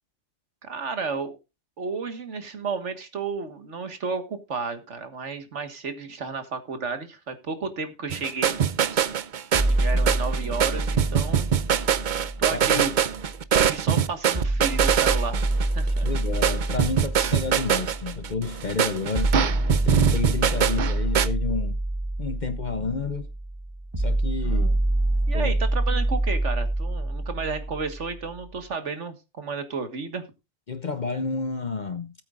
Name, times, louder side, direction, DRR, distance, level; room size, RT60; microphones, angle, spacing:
voice 1, 0.6-1.4 1.8-8.6 8.9-9.0 9.7-11.5 12.4-13.0 13.5-16.1 24.4-24.8 25.3-30.2, right 4 dB, 65° right, 1.8 m, -32 dB
sound 1, 8.1-21.3, right 8 dB, 50° right, 0.6 m, -23 dB
sound 2, 9.5-13.5 14.3-28.4, right 1 dB, 25° right, 1.2 m, -27 dB
voice 2, 12.5-12.9 16.0-19.5 19.8-21.8 22.2-23.3 24.0-24.7 25.3-25.5 30.7-32.1, left 4 dB, 45° left, 0.8 m, -30 dB
18.5 x 8.6 x 2.4 m
omnidirectional pair, 1.3 m